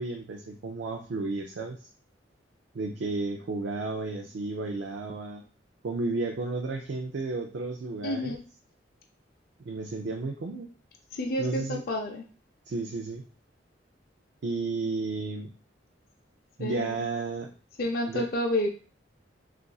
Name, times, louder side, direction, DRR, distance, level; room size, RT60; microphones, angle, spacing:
voice 1, 0.0-1.9 2.7-5.4 5.8-8.4 9.7-10.7 11.4-11.8 12.7-13.2 14.4-15.5 16.6-17.5 18.1-18.3, right 3 dB, 65° right, 3 dB, 0.4 m, -33 dB
voice 2, 8.0-8.4 11.2-12.2 16.6-17.0 17.8-18.7, left 1 dB, 50° left, 2 dB, 0.5 m, -29 dB
3.9 x 2.4 x 2.3 m, 0.37 s
head